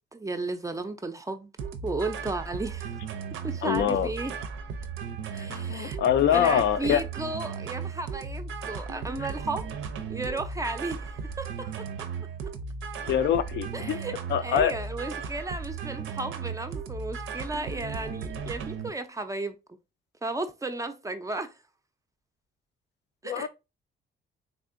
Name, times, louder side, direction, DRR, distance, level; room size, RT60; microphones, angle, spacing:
voice 1, 0.1-1.5 1.8-3.0 3.4-4.3 5.3-6.0 6.3-9.7 10.1-11.7 13.7-14.2 14.4-19.6 20.2-21.5 23.2-23.5, right 2 dB, 15° right, 0.4 m, -34 dB
sound 1, 1.6-18.9, right 5 dB, 80° right, 0.5 m, -36 dB
voice 2, 3.6-4.1 5.4-7.0 13.0-14.0 14.3-14.7 23.2-23.5, left 9 dB, 65° left, 0.4 m, -24 dB
3.5 x 2.5 x 2.5 m
cardioid pair, 90°, 20 cm